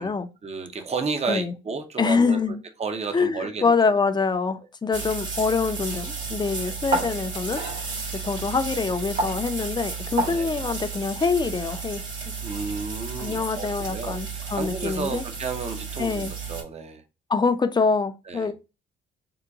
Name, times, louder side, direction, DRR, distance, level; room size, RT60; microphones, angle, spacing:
voice 1, 0.4-3.6 6.6-6.8 10.3-10.5 12.4-17.0 18.3-18.5, right 4 dB, 35° right, 0.7 m, -32 dB
voice 2, 2.0-2.6 3.1-7.9 8.1-12.3 13.2-15.2 16.0-16.3 17.3-18.5, left 4 dB, 20° left, 0.5 m, -25 dB
sound 1, 4.9-16.6, right 4 dB, 75° right, 1.9 m, -32 dB
3.9 x 2.2 x 4.5 m
cardioid pair, 90°, 20 cm